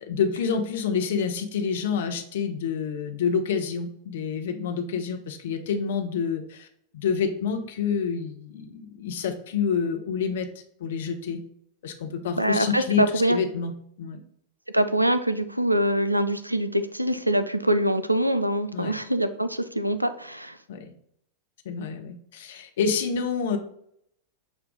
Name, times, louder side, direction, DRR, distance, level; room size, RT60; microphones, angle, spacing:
voice 1, 0.0-6.7 6.9-10.5 10.8-11.4 11.8-13.7 14.0-14.2 18.7-18.9 20.7-20.9 21.6-23.6, left 6 dB, 60° left, 6 dB, 0.6 m, -28 dB
voice 2, 12.4-13.4 14.7-20.6, right 1 dB, 85° right, 11 dB, 0.3 m, -24 dB
6.1 x 2.3 x 3.7 m, 0.69 s
figure-of-eight pair, 90°, 0 cm